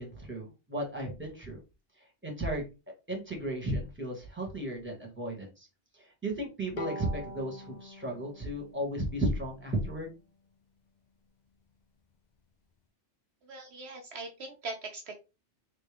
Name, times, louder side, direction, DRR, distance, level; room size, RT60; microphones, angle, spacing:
voice 1, 0.0-1.6 2.2-2.7 3.1-5.7 5.9-10.1, right 1 dB, 10° right, 0 dB, 1.8 m, -34 dB
Bowed string instrument, 6.8-10.1, equal, 45° left, 0.7 m, -44 dB
voice 2, 13.4-15.2, right 3 dB, 65° right, 3 dB, 1.0 m, -41 dB
3.9 x 3.4 x 3.5 m, 0.28 s
omnidirectional pair, 1.2 m